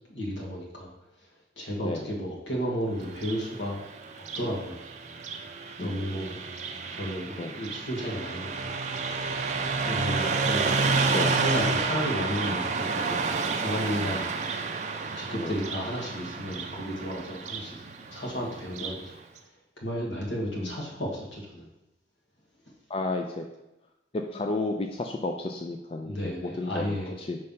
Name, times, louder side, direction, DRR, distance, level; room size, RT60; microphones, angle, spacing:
voice 1, 0.1-0.9 1.2-3.8 4.1-4.8 5.8-6.4 6.9-8.8 9.8-14.3 15.2-19.1 19.8-21.7 26.0-27.1, equal, 80° left, -3 dB, 1.6 m, -33 dB
Car passing by, 3.1-19.0, right 4 dB, 40° right, 0.4 m, -30 dB
voice 2, 5.8-6.2 7.4-7.6 10.1-10.2 11.1-11.4 15.4-15.5 20.6-20.7 22.9-23.4 24.1-26.8 27.2-27.4, left 2 dB, 30° left, 3 dB, 0.3 m, -32 dB
5.3 x 3.3 x 5.5 m, 0.93 s
head